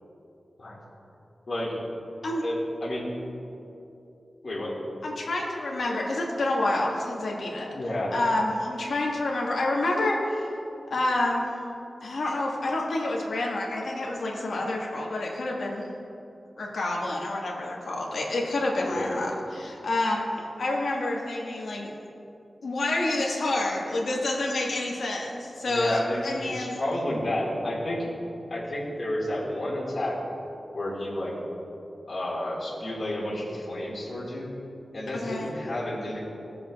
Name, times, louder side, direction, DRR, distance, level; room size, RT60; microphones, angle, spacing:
voice 1, 1.5-1.8 2.4-3.1 4.4-4.7 7.7-8.1 18.8-19.2 25.6-28.0 28.5-30.2 30.7-31.4 32.1-34.5 34.9-36.2, left 1 dB, 50° left, -7 dB, 1.9 m, -31 dB
voice 2, 5.0-7.7 8.1-10.5 10.9-11.5 12.0-15.9 16.6-21.9 22.6-26.8 35.1-35.5, left 2 dB, 90° left, -3 dB, 1.6 m, -28 dB
19.5 x 7.1 x 2.4 m, 2.8 s
wide cardioid pair, 115°, 0 cm